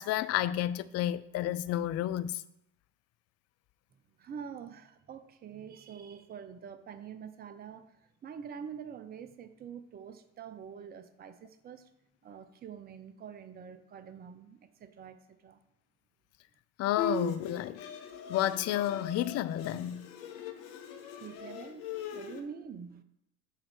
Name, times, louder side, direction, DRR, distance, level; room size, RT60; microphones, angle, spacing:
voice 1, 0.0-2.4 16.8-17.8 18.3-20.1, left 12 dB, 40° left, 0.5 m, -31 dB
voice 2, 4.2-11.9 12.2-15.6 21.2-23.0, right 7 dB, 25° right, 0.6 m, -46 dB
Bowed string instrument, 17.0-22.4, left 4 dB, 60° left, 1.1 m, -40 dB
6.5 x 3.8 x 6.1 m
hypercardioid pair, 70°, 38 cm